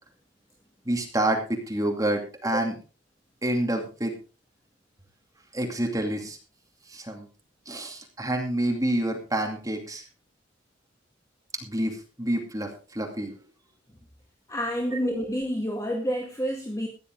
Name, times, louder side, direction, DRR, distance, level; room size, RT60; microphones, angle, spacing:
voice 1, 0.8-2.8 3.4-4.1 5.5-6.4 6.9-7.3 7.7-10.0 11.6-13.3 14.9-15.2, right 1 dB, 20° right, 2 dB, 2.5 m, -28 dB
voice 2, 14.5-16.9, equal, 15° left, 1 dB, 2.0 m, -28 dB
15.5 x 10.5 x 3.9 m, 0.34 s
head